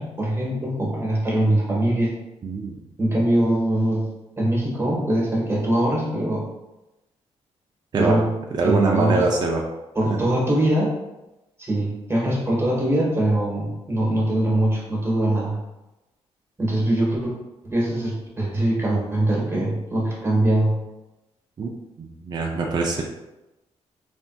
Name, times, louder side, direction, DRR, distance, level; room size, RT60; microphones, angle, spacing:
voice 1, 0.0-2.1 3.0-4.1 4.4-6.5 8.0-8.4 8.6-9.3 9.9-10.9 11.6-15.6 16.6-17.3 17.6-20.8, right 1 dB, 20° right, -4 dB, 1.1 m, -22 dB
voice 2, 2.4-2.8 7.9-8.2 8.6-9.6 21.6-21.7 22.0-23.0, right 3 dB, 35° right, 0 dB, 0.4 m, -23 dB
3.4 x 2.6 x 2.2 m, 1.0 s
cardioid pair, 95°, 12 cm